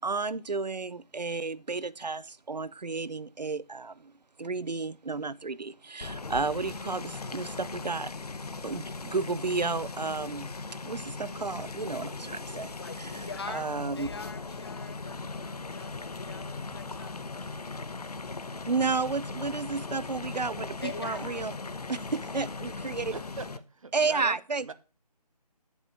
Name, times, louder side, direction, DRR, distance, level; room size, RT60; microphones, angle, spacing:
voice 1, 0.0-4.1 4.4-8.1 8.6-10.5 10.8-14.1 18.7-21.6 21.9-23.1 23.9-24.7, right 4 dB, 90° right, 0.6 m, -32 dB
sound 1, 6.0-23.6, left 3 dB, 70° left, 0.9 m, -39 dB
voice 2, 12.8-13.7 13.9-17.1 20.8-21.5, left 4 dB, 35° left, 0.8 m, -43 dB
voice 3, 23.1-24.7, right 4 dB, 55° right, 0.9 m, -42 dB
8.4 x 6.9 x 4.5 m
figure-of-eight pair, 160°, 21 cm